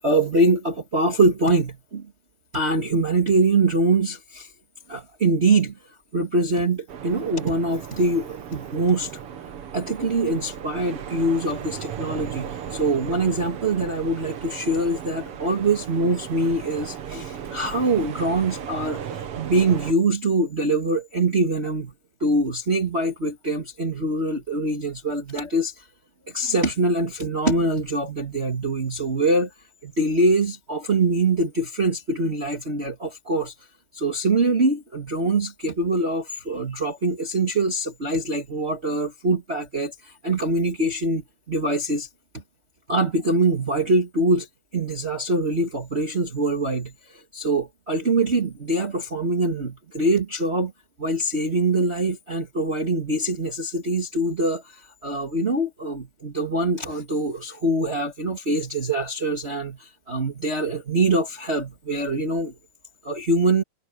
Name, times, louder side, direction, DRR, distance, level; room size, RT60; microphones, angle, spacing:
voice 1, 0.0-2.1 2.5-4.5 4.9-5.7 6.1-9.1 9.7-19.0 19.3-21.9 22.2-25.7 26.3-29.5 29.8-33.5 33.9-42.1 42.9-44.5 44.7-46.9 47.3-50.7 51.0-54.6 55.0-62.5 63.0-63.6, right 2 dB, 25° right, 1.7 m, -23 dB
sound 1, 6.9-19.9, right 8 dB, 55° right, 2.1 m, -36 dB
omnidirectional pair, 3.4 m